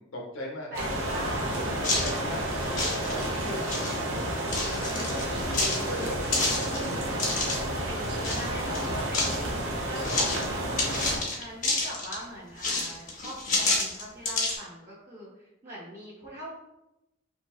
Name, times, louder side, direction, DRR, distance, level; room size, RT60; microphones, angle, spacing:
voice 1, 0.0-0.7 1.7-4.2 4.8-7.1 9.3-10.3, left 1 dB, 90° left, -1 dB, 0.8 m, -40 dB
voice 2, 0.7-2.2 5.0-5.5 7.3-10.9 11.3-16.6, equal, 45° right, -8 dB, 0.7 m, -42 dB
sound 1, 0.7-11.2, right 1 dB, 80° right, 0.6 m, -31 dB
sound 2, 1.8-2.2 2.6-3.4 3.6-4.0 4.5-5.2 5.5-7.6 8.2-8.5 8.7-9.4 10.0-10.4 10.8-12.2 12.6-14.6, left 2 dB, 40° left, 0.6 m, -29 dB
2.9 x 2.7 x 2.3 m, 0.90 s
head